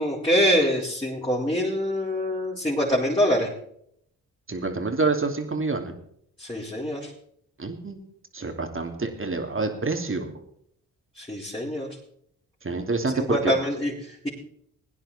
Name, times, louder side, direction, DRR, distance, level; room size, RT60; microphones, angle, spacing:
voice 1, 0.0-3.5 6.4-7.1 11.2-11.9 13.1-14.3, equal, 15° left, -6 dB, 4.8 m, -25 dB
voice 2, 4.5-5.9 7.6-8.0 8.3-10.3 12.6-13.5, right 3 dB, 35° right, 4 dB, 2.9 m, -27 dB
17.5 x 10.0 x 4.4 m, 0.68 s
supercardioid pair, 55°, 35 cm